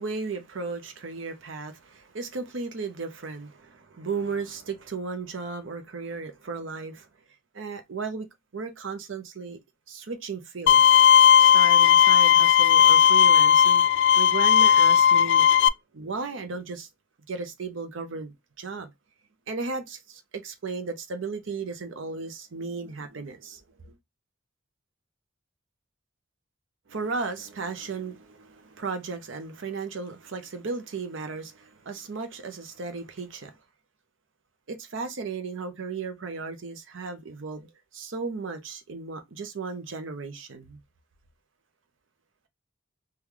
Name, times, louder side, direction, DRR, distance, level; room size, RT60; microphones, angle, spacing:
voice 1, 0.0-7.1 7.5-8.3 8.5-9.6 9.9-10.9 11.4-13.8 14.2-16.9 17.3-18.9 19.5-24.0 26.9-33.5 34.7-40.8, right 4 dB, 70° right, 0.6 m, -35 dB
Bowed string instrument, 10.7-15.7, left 9 dB, 60° left, 0.3 m, -16 dB
3.6 x 2.2 x 3.0 m
head